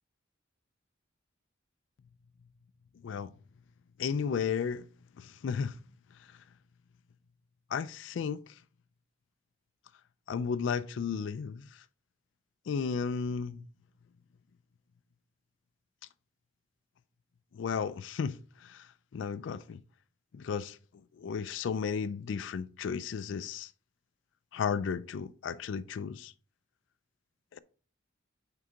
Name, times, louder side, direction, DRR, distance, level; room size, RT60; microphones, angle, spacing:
voice 1, 4.0-4.8 5.2-5.7 7.7-8.4 10.3-11.6 12.7-13.6 17.5-18.9 19.1-19.8 20.3-20.8 21.2-23.7 24.5-26.3 27.5-27.6, left 6 dB, 80° left, 0.3 m, -34 dB
6.5 x 4.5 x 3.7 m
head